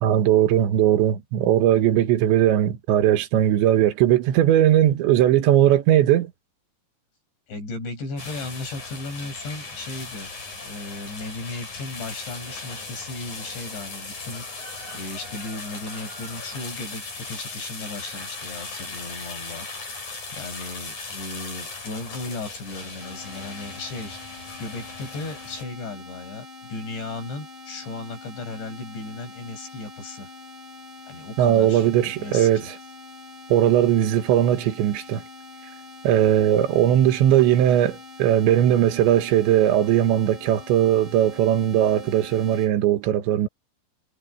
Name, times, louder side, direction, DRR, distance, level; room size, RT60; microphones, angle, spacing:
voice 1, 0.0-6.3 31.4-32.8 33.5-35.2 36.0-43.5, right 11 dB, 90° right, 3.7 m, -19 dB
voice 2, 7.5-10.3 10.6-14.5 14.9-19.7 20.3-30.3 31.1-32.7, left 3 dB, 80° left, 9.9 m, -36 dB
sound 1, 8.2-25.6, left 3 dB, 45° left, 9.5 m, -38 dB
sound 2, 23.0-42.7, left 3 dB, 35° right, 5.6 m, -44 dB
omnidirectional pair, 5.1 m